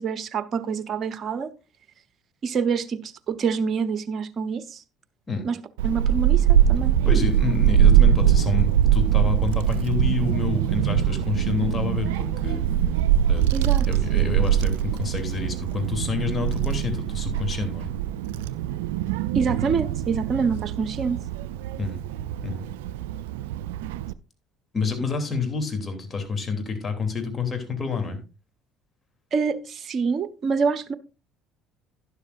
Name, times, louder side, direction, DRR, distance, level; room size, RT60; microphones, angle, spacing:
voice 1, 0.0-1.5 2.4-4.8 5.4-5.6 5.8-7.0 13.5-13.8 19.3-21.2 29.3-30.9, right 5 dB, 45° right, 13 dB, 1.0 m, -26 dB
Child speech kid speaking / Wind, 5.8-24.1, right 10 dB, 75° right, 0.4 m, -22 dB
voice 2, 7.0-12.7 13.3-13.4 13.9-17.9 21.8-22.0 22.4-22.7 24.7-28.2, left 5 dB, 30° left, 5 dB, 3.1 m, -28 dB
12.0 x 10.5 x 2.6 m, 0.29 s
hypercardioid pair, 60°, 0 cm